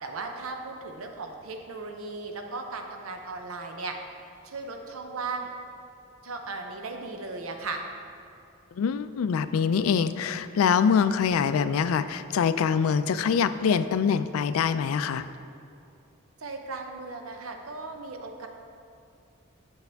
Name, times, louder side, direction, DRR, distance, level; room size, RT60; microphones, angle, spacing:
voice 1, 0.0-3.9 4.4-5.5 6.2-7.8 16.4-18.5, right 3 dB, 80° right, 4 dB, 0.6 m, -36 dB
voice 2, 8.8-15.2, left 6 dB, 80° left, 13 dB, 0.3 m, -24 dB
8.3 x 6.5 x 3.4 m, 2.5 s
head